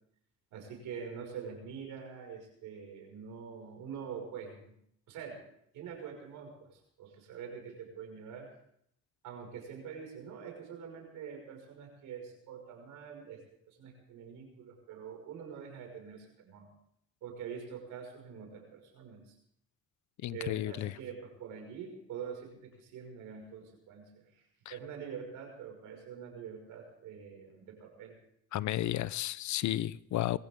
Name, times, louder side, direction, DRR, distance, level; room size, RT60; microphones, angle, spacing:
voice 1, 0.5-4.7 5.1-5.4 5.7-8.5 9.2-16.7 17.2-19.3 20.3-28.2, right 7 dB, 90° right, 2 dB, 5.8 m, -45 dB
voice 2, 20.2-20.9 24.7-24.8 28.5-30.4, left 14 dB, 70° left, 19 dB, 0.6 m, -33 dB
22.0 x 16.0 x 3.7 m, 0.70 s
cardioid pair, 90°, 30 cm